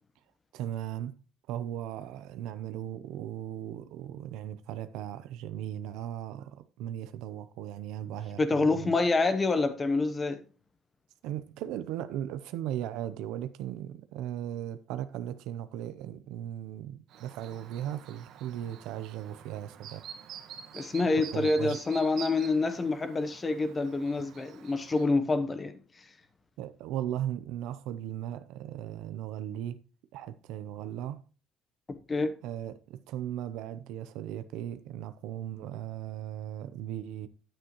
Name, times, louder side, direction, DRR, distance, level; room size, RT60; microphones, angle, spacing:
voice 1, 0.5-1.1 1.5-9.0 11.2-20.0 21.3-21.8 26.6-29.7 30.1-31.2 32.4-37.3, right 11 dB, 85° right, 0.6 m, -37 dB
voice 2, 8.4-10.4 20.7-25.8 32.1-32.3, left 3 dB, 20° left, 0.9 m, -27 dB
Chirp tweet, 17.1-25.1, right 9 dB, 60° right, 1.2 m, -47 dB
10.0 x 8.9 x 3.0 m
cardioid pair, 165°, 0 cm